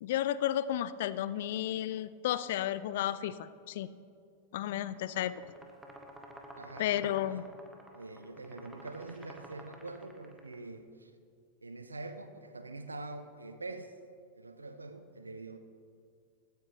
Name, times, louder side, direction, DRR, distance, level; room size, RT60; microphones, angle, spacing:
voice 1, 0.0-3.9 4.5-5.3 6.8-7.4, left 12 dB, 55° left, 16 dB, 0.3 m, -32 dB
sound 1, 4.8-10.6, right 1 dB, 5° right, 1.1 m, -52 dB
voice 2, 6.6-7.5 7.9-11.1 11.6-13.9 14.4-15.6, right 2 dB, 80° right, 9 dB, 0.6 m, -45 dB
15.0 x 9.3 x 3.0 m, 2.3 s
figure-of-eight pair, 90°, 0 cm